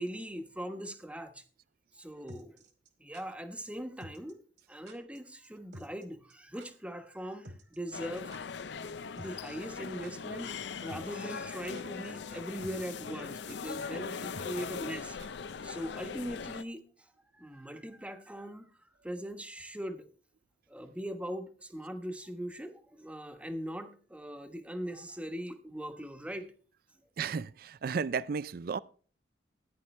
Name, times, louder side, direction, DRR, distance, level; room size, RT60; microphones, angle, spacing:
voice 1, 0.0-1.4 1.9-2.6 3.0-4.4 4.7-8.3 9.1-15.2 15.6-18.7 19.0-20.1 20.7-26.5, equal, 5° right, 1.1 m, -40 dB
sound 1, 2.3-3.2 4.0-4.3 4.6-4.7 4.9-5.2 5.4-5.5 5.7-6.0 6.3-6.4 6.6-6.7 7.4-8.6 8.9-9.0 9.2-9.8 10.0-10.1 10.9-11.2 11.5-12.1 12.3-12.4 12.6-12.9 13.2-13.3 13.5-13.6 14.3-15.5 15.8-15.9, right 1 dB, 70° right, 2.3 m, -50 dB
sound 2, 7.9-16.6, left 5 dB, 70° left, 0.5 m, -40 dB
voice 2, 27.2-28.8, right 5 dB, 55° right, 0.4 m, -33 dB
15.0 x 9.9 x 3.2 m
head